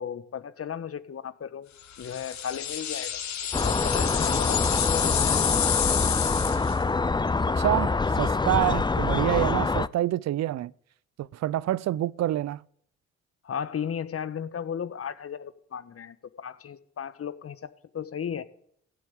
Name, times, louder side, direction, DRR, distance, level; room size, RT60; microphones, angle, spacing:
voice 1, 0.0-1.7 2.0-3.2 3.6-5.4 13.4-18.4, left 8 dB, 50° left, 1.4 m, -35 dB
sound 1, 2.0-6.8, left 9 dB, 70° left, 2.1 m, -29 dB
sound 2, 3.5-9.9, left 3 dB, 15° left, 0.6 m, -25 dB
voice 2, 7.6-10.7 11.2-12.6, right 13 dB, 60° right, 0.6 m, -27 dB
15.5 x 6.9 x 9.4 m
hypercardioid pair, 50°, 30 cm